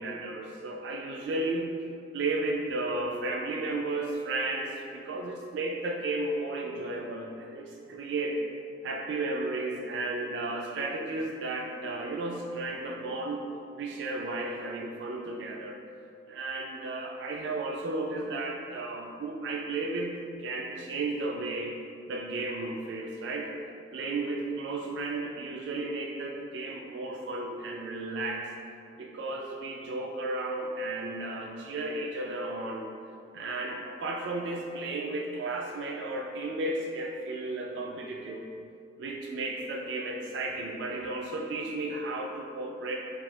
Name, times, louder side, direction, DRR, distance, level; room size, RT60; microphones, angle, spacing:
voice 1, 0.0-1.8 2.1-8.4 8.8-13.5 13.8-15.8 16.3-21.8 22.1-23.5 23.9-28.5 29.0-32.9 33.3-38.4 39.0-43.0, right 2 dB, 80° right, 0 dB, 0.3 m, -33 dB
3.1 x 2.7 x 3.6 m, 2.4 s
head